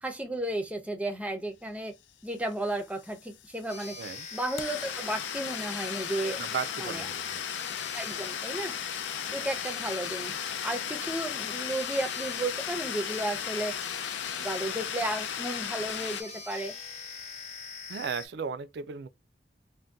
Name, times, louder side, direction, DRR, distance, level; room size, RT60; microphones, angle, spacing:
voice 1, 0.0-1.9 2.2-4.0 4.3-6.4 6.8-7.1 7.9-8.7 9.3-10.3 10.6-13.8 14.4-16.7, right 1 dB, 10° right, 0.5 m, -33 dB
sound 1, 2.5-2.6 2.8-16.2, left 9 dB, 85° left, 0.4 m, -36 dB
sound 2, 3.7-18.3, left 5 dB, 35° left, 0.7 m, -42 dB
voice 2, 4.0-4.3 6.4-7.4 9.3-9.5 17.9-19.1, right 6 dB, 65° right, 0.3 m, -36 dB
2.6 x 2.1 x 3.3 m
head